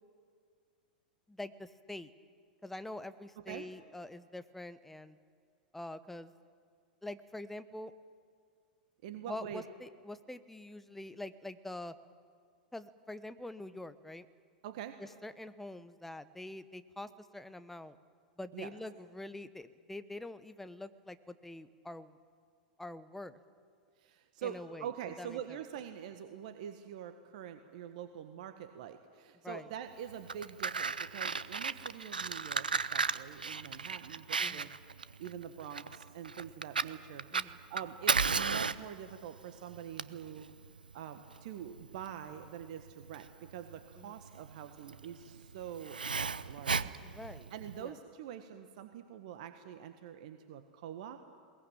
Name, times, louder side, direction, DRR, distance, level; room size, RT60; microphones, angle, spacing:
voice 1, 1.3-2.1 2.6-5.2 5.7-6.3 7.0-7.9 9.3-11.9 12.7-14.3 15.0-18.0 18.4-22.2 22.8-23.4 24.4-24.9 25.2-25.4 29.4-29.7 34.4-34.7 37.3-37.6 44.0-44.2 47.0-47.5 47.8-48.0, left 1 dB, 5° left, 12 dB, 1.0 m, -45 dB
voice 2, 9.0-9.6 14.6-15.0 18.5-18.7 24.0-34.7 35.2-40.5 40.9-51.2, right 9 dB, 55° right, 8 dB, 1.4 m, -45 dB
Fire, 30.1-47.8, right 5 dB, 85° right, 0.6 m, -35 dB
21.5 x 19.0 x 9.1 m, 2.1 s
figure-of-eight pair, 95°, 5 cm